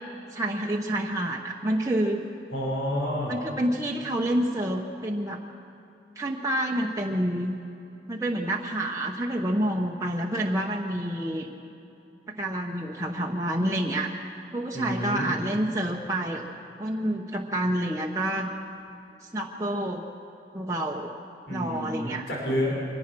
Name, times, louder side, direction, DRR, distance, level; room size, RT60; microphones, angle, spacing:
voice 1, 0.3-2.2 3.3-5.4 6.2-7.5 8.1-11.5 12.4-14.1 14.5-16.4 16.8-18.5 19.2-20.0 20.5-21.1 21.5-22.3, right 1 dB, 15° right, -1 dB, 0.9 m, -28 dB
voice 2, 2.5-3.3 14.7-15.4 21.5-22.8, equal, 85° left, -3 dB, 5.6 m, -29 dB
24.0 x 18.5 x 6.2 m, 2.8 s
head